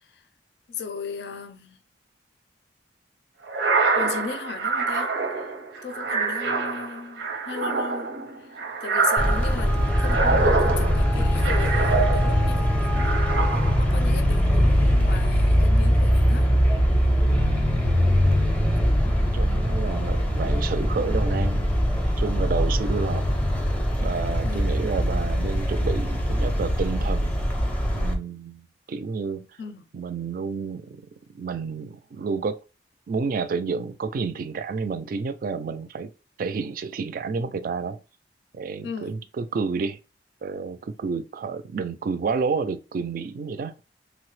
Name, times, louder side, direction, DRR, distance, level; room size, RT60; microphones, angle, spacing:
voice 1, 0.7-1.8 3.9-5.5 5.8-8.5 8.8-16.5 16.8-17.1 24.4-24.6 29.6-29.8 38.8-39.2, left 5 dB, 65° left, 0.4 m, -37 dB
sound 1, 3.5-12.5 12.9-14.0, right 4 dB, 80° right, 0.7 m, -26 dB
Traffic noise roadway noise, 9.2-28.1, equal, 5° left, 0.5 m, -22 dB
voice 2, 19.3-21.8 22.2-23.3 24.0-27.4 27.9-29.5 29.9-31.0 31.3-32.6 33.1-36.1 36.4-38.0 38.5-40.0 40.4-43.7, right 5 dB, 50° right, 0.3 m, -30 dB
3.1 x 2.0 x 3.1 m
head